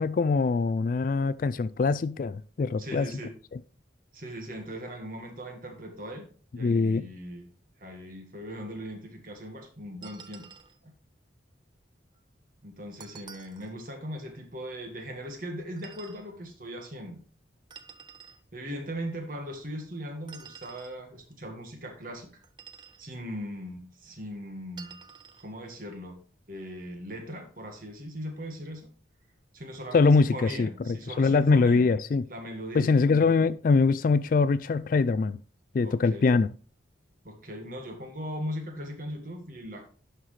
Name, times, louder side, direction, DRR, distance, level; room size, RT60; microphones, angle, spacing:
voice 1, 0.0-3.1 3.5-3.6 6.6-7.0 29.9-32.2 32.7-35.4 35.7-36.5, left 4 dB, 45° left, 0.3 m, -23 dB
voice 2, 2.8-3.3 4.1-6.3 6.5-7.5 7.8-10.5 10.8-10.9 12.6-17.2 18.5-22.3 23.0-25.0 25.4-26.2 26.5-28.9 29.5-31.9 32.3-32.9 35.8-36.3 37.2-39.9, equal, 45° right, 1.6 m, -39 dB
sound 1, 10.0-10.8 13.0-13.7 15.8-16.3 17.7-18.4 20.3-21.0 22.4-23.0 24.8-25.5, right 6 dB, 25° right, 0.5 m, -49 dB
10.5 x 5.8 x 3.2 m
head